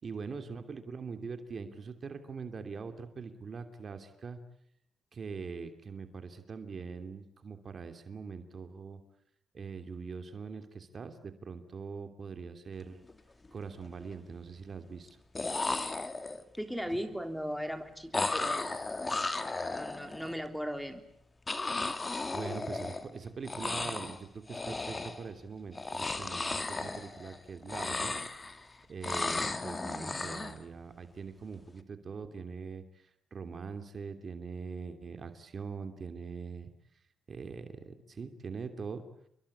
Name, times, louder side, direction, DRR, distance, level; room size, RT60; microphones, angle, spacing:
voice 1, 0.0-4.4 5.1-9.0 9.5-13.0 13.5-15.2 16.9-17.0 22.3-28.1 28.9-36.7 37.3-39.0, right 5 dB, 45° right, 8 dB, 2.9 m, -42 dB
sound 1, 12.9-13.1 13.5-14.1 15.1-15.2 15.4-16.6 18.1-20.3 21.5-23.2 23.4-24.2 24.5-25.3 25.7-27.4 27.6-28.7 29.0-30.6, left 3 dB, 25° left, 2.5 m, -35 dB
voice 2, 16.6-18.8 19.7-21.0, equal, ahead, 7 dB, 3.5 m, -37 dB
29.5 x 23.0 x 8.7 m, 0.73 s
cardioid pair, 90°, 0 cm